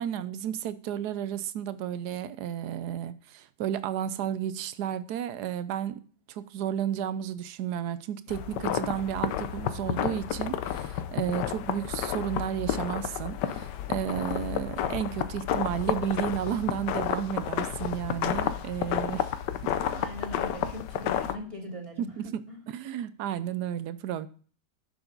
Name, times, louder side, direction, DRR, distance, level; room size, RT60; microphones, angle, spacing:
voice 1, 0.0-6.0 6.3-19.3 19.6-19.7 22.0-22.4 22.7-24.3, right 10 dB, 70° right, 1.1 m, -32 dB
sound 1, 8.3-21.4, left 10 dB, 75° left, 1.3 m, -31 dB
voice 2, 19.9-22.1 22.5-22.6, equal, 20° right, 2.1 m, -40 dB
10.5 x 6.7 x 3.9 m
omnidirectional pair, 1.9 m